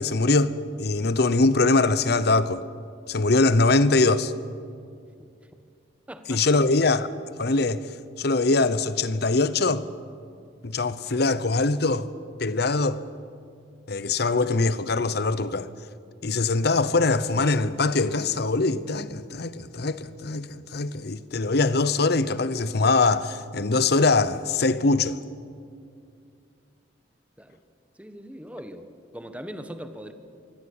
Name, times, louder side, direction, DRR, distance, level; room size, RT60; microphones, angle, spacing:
voice 1, 0.0-2.6 3.1-4.3 6.3-7.1 7.4-7.8 8.2-9.8 10.6-12.1 12.4-13.0 13.9-15.7 16.2-25.2, left 3 dB, 60° left, 0.8 m, -22 dB
voice 2, 6.1-6.4 27.4-27.6 27.9-28.9 29.1-30.1, equal, 5° right, 1.2 m, -40 dB
23.5 x 16.5 x 8.5 m
head